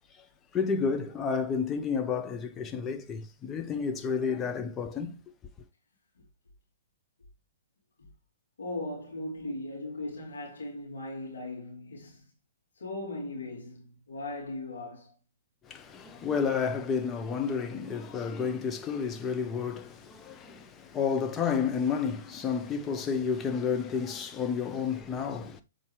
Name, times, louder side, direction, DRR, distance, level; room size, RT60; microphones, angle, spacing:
voice 1, 0.5-5.2 15.7-25.6, left 6 dB, 20° left, 0.9 m, -31 dB
voice 2, 8.6-12.2 12.8-15.1, left 2 dB, 80° left, 3.0 m, -38 dB
7.2 x 4.4 x 3.2 m
hypercardioid pair, 120°, 0 cm